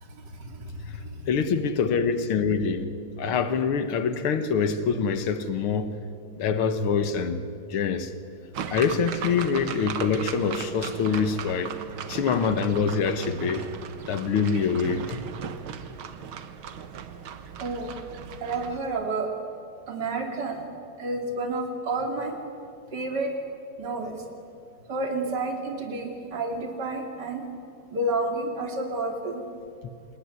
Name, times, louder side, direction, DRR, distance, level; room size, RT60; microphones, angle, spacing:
voice 1, 0.0-1.3 17.6-17.9 18.4-19.3 19.9-20.7 21.0-22.4 22.9-23.3 23.8-24.2 24.9-27.5 27.9-29.4, right 2 dB, 50° right, 3.2 m, -30 dB
voice 2, 1.3-6.0 6.4-7.4 7.7-8.1 8.7-11.8 12.1-13.7 14.1-15.2, left 5 dB, 90° left, 2.2 m, -25 dB
sound 1, 8.5-18.8, right 8 dB, 75° right, 2.1 m, -37 dB
28.0 x 20.5 x 9.8 m
omnidirectional pair, 2.3 m